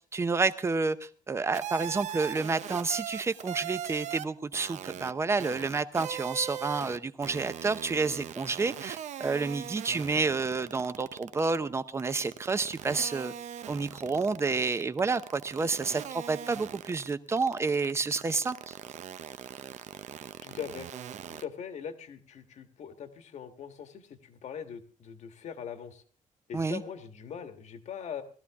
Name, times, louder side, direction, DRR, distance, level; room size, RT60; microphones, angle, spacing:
voice 1, 0.0-13.3 13.7-18.8 26.5-26.8, right 4 dB, 20° right, 13 dB, 0.7 m, -29 dB
sound 1, 1.5-4.2 4.5-5.1 5.4-7.0 7.2-11.6 12.0-21.4, right 10 dB, 55° right, 0.6 m, -40 dB
voice 2, 20.4-20.9 21.4-26.0 26.5-28.2, left 7 dB, 55° left, 8 dB, 1.5 m, -41 dB
19.0 x 14.0 x 3.6 m, 0.40 s
cardioid pair, 170°, 14 cm